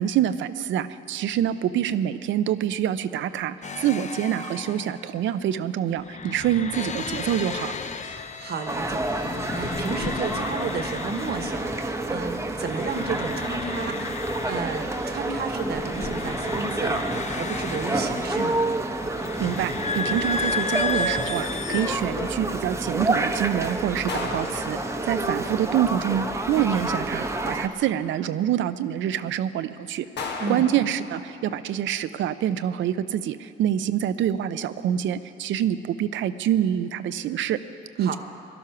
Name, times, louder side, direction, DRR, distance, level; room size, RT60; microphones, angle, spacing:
voice 1, 0.0-7.8 19.4-24.8 25.1-30.1 30.5-37.6 38.0-38.2, right 10 dB, 75° right, 13 dB, 0.5 m, -26 dB
sound 1, 3.6-12.3 12.5-22.3, left 4 dB, 35° left, 0.8 m, -33 dB
voice 2, 8.4-18.6 30.4-30.7 38.0-38.2, right 4 dB, 55° right, 6 dB, 1.3 m, -32 dB
sound 2, 8.7-27.7, right 2 dB, 15° right, 0.9 m, -29 dB
sound 3, 21.1-22.0 24.1-25.6 30.2-31.7, left 3 dB, 60° left, 1.6 m, -36 dB
17.5 x 12.0 x 5.8 m, 2.7 s
cardioid pair, 90°, 20 cm